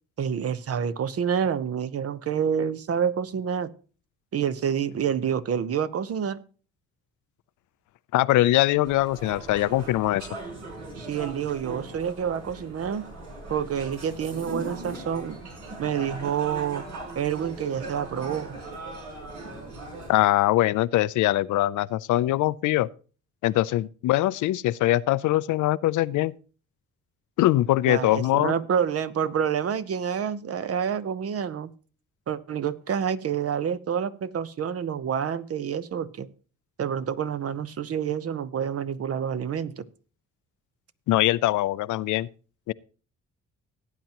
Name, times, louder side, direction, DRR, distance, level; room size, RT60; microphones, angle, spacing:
voice 1, 0.2-3.7 4.3-6.4 11.0-13.1 13.5-15.4 15.8-16.8 17.2-18.6 27.9-31.7 32.3-36.3 36.8-39.9, right 8 dB, 50° right, 0.9 m, -28 dB
voice 2, 8.1-10.3 20.1-22.9 23.4-26.3 27.4-28.5 41.1-42.3 42.7-42.8, left 15 dB, 75° left, 0.5 m, -22 dB
sound 1, 8.8-20.1, right 2 dB, 75° right, 5.3 m, -39 dB
17.5 x 9.2 x 3.0 m
cardioid pair, 90°, 30 cm